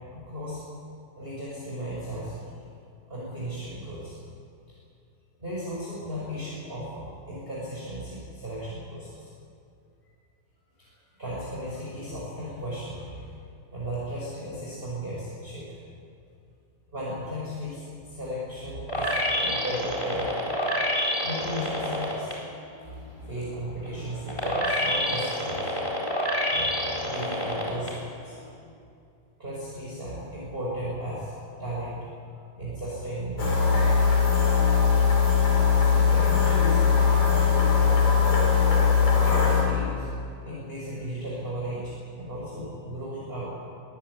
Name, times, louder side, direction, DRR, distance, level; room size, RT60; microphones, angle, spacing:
voice 1, 0.1-0.6 1.1-2.4 3.1-4.2 5.4-9.3 10.8-13.3 13.7-15.8 16.9-20.3 21.2-22.3 23.2-25.7 26.5-28.4 29.4-31.3 31.6-32.0 32.3-34.0 35.8-38.0 39.3-40.1 40.3-43.4, equal, 15° right, -7 dB, 5.4 m, -35 dB
sound 1, 18.9-22.3 22.8-27.9 28.4-28.5, equal, 10° left, 4.0 m, -28 dB
sound 2, 33.4-39.6, left 5 dB, 90° left, 6.0 m, -20 dB
23.0 x 15.5 x 9.4 m, 2.5 s
omnidirectional pair, 3.8 m